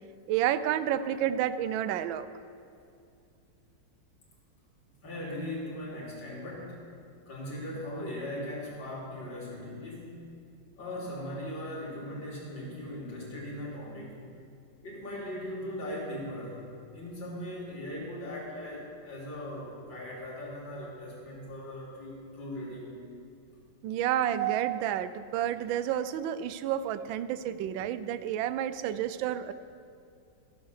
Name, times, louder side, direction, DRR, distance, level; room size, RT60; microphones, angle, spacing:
voice 1, 0.3-2.3 23.8-29.5, right 11 dB, 85° right, 13 dB, 1.3 m, -30 dB
voice 2, 5.0-6.8 7.3-10.2 10.8-14.2 14.8-23.1, left 1 dB, 80° left, -6 dB, 3.6 m, -39 dB
14.0 x 8.1 x 6.5 m, 2.4 s
omnidirectional pair, 2.1 m